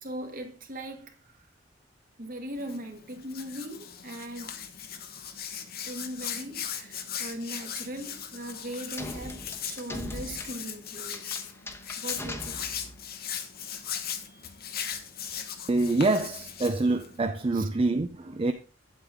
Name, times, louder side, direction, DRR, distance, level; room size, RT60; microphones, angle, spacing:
voice 1, 0.0-1.1 2.2-4.5 5.9-11.3 12.0-12.5 14.3-14.4 17.5-17.7, right 1 dB, 50° right, 1.7 m, -39 dB
Hands, 2.6-17.2, left 8 dB, 55° left, 1.1 m, -38 dB
sound 1, 9.0-13.1, left 1 dB, 15° left, 1.1 m, -40 dB
voice 2, 15.7-18.5, right 2 dB, 30° right, 0.5 m, -26 dB
8.9 x 8.2 x 3.7 m
head